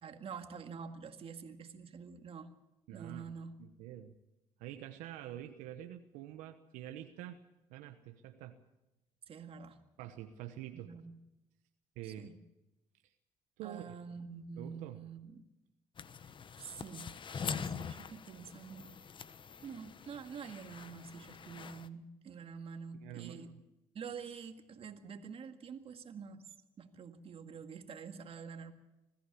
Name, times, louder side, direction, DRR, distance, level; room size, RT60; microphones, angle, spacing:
voice 1, 0.0-2.5 2.9-3.6 9.3-9.8 10.7-11.2 12.0-12.4 13.6-15.4 16.2-16.3 16.6-19.0 19.6-23.5 23.9-26.5 26.8-28.7, right 6 dB, 50° right, 7 dB, 2.0 m, -47 dB
voice 2, 2.9-3.3 3.6-4.2 4.6-7.4 7.7-8.6 10.0-10.9 12.0-12.3 13.6-13.9 14.6-15.0 22.9-23.6, right 12 dB, 85° right, 7 dB, 1.1 m, -46 dB
sound 1, 16.0-21.9, left 6 dB, 40° left, 1.0 m, -44 dB
21.0 x 14.5 x 8.4 m, 0.96 s
supercardioid pair, 75°, 12 cm